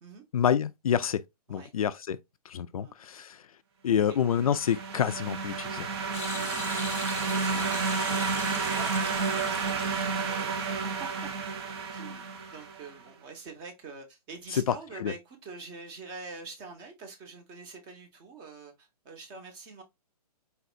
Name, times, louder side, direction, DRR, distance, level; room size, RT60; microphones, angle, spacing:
voice 1, 0.3-1.2 1.5-2.2 2.5-3.4 3.8-5.9 14.5-15.1, left 8 dB, 60° left, 0.4 m, -28 dB
voice 2, 3.9-4.3 6.3-6.6 7.3-11.3 11.9-19.8, right 4 dB, 25° right, 1.1 m, -46 dB
sound 1, 4.2-12.9, right 5 dB, 40° right, 0.8 m, -31 dB
sound 2, 6.1-10.7 11.0-11.1, left 6 dB, 10° left, 0.7 m, -41 dB
4.1 x 4.0 x 2.4 m
hypercardioid pair, 135°, 20 cm